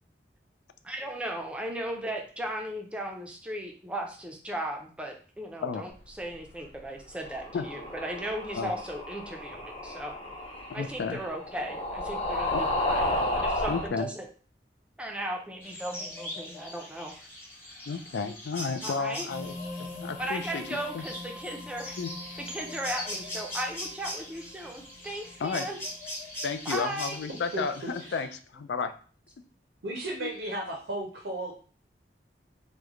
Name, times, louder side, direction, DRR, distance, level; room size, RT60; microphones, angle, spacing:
voice 1, 0.8-10.1 10.7-14.3 15.0-17.1 18.8-19.3 20.2-22.0 22.4-25.8 26.7-27.2, right 1 dB, 5° right, 1 dB, 0.5 m, -36 dB
sound 1, 7.2-13.9, left 1 dB, 30° left, 0.7 m, -32 dB
voice 2, 10.7-11.2 12.5-12.6 13.7-14.1 17.9-19.5 20.0-20.6 20.9-21.0 22.0-22.1 25.4-25.7 26.4-28.9 30.2-30.3, left 5 dB, 75° left, 9 dB, 0.4 m, -32 dB
sound 2, 15.6-28.2, left 1 dB, 15° left, 1.0 m, -41 dB
sound 3, 19.3-27.0, left 2 dB, 60° left, 0.9 m, -44 dB
voice 3, 29.8-31.5, right 1 dB, 80° right, 0 dB, 0.6 m, -34 dB
3.0 x 2.1 x 3.6 m, 0.41 s
head